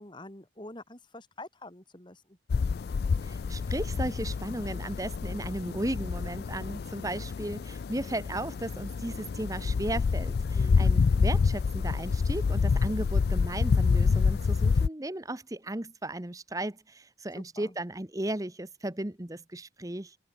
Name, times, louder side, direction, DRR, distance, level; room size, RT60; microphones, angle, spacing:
voice 1, 0.0-2.4 10.5-10.8 17.3-17.7, left 1 dB, 25° left, 2.8 m, -46 dB
sound 1, 2.5-14.9, left 5 dB, 55° left, 0.3 m, -27 dB
voice 2, 3.2-20.2, right 1 dB, 20° right, 1.0 m, -35 dB
open air
head